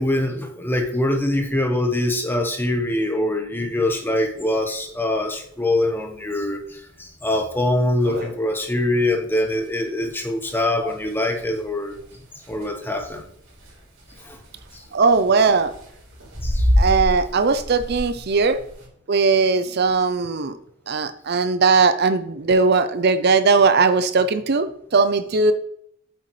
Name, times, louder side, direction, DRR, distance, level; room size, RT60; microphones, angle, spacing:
voice 1, 0.0-12.0 12.5-13.2 14.2-14.4 14.7-14.8 16.4-16.7, left 1 dB, 10° left, 4 dB, 1.1 m, -23 dB
sound 1, 3.8-3.9 4.2-4.3 4.6-4.7 5.3-5.5 6.0-6.1 6.6-6.7 7.0-7.1 7.6-7.7 7.8-18.9, equal, 80° right, 3.8 m, -28 dB
voice 2, 14.9-15.7 16.8-18.6 19.1-20.6 20.9-25.5, right 4 dB, 55° right, 11 dB, 0.5 m, -19 dB
8.5 x 7.8 x 3.2 m, 0.68 s
head